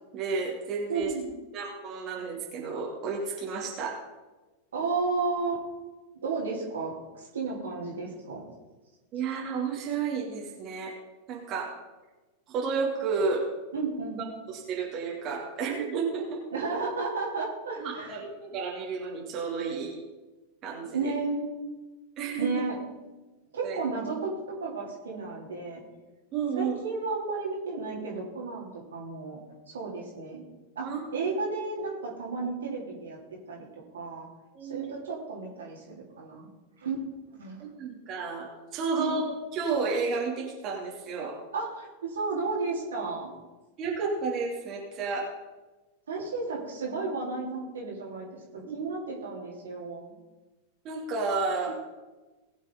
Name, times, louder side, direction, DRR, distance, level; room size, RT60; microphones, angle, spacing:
voice 1, 0.1-1.1 1.5-4.0 9.1-10.9 11.3-11.7 12.5-13.4 14.5-16.4 17.8-19.9 20.6-21.1 22.2-22.5 23.6-23.8 26.3-26.8 30.8-31.0 34.5-34.9 37.6-41.4 43.8-45.3 48.6-48.8 50.8-51.7, right 4 dB, 35° right, -2 dB, 2.9 m, -31 dB
voice 2, 0.9-1.2 4.7-5.6 6.2-8.5 13.7-14.2 16.5-18.2 20.9-21.5 22.4-22.7 23.5-25.8 26.6-29.4 29.7-30.4 30.8-34.3 34.6-36.5 36.8-37.0 37.3-37.6 39.0-39.1 41.5-43.3 46.1-50.1 51.7-51.8, right 4 dB, 65° right, -3 dB, 3.4 m, -33 dB
20.5 x 7.3 x 4.0 m, 1.2 s
figure-of-eight pair, 90°, 0 cm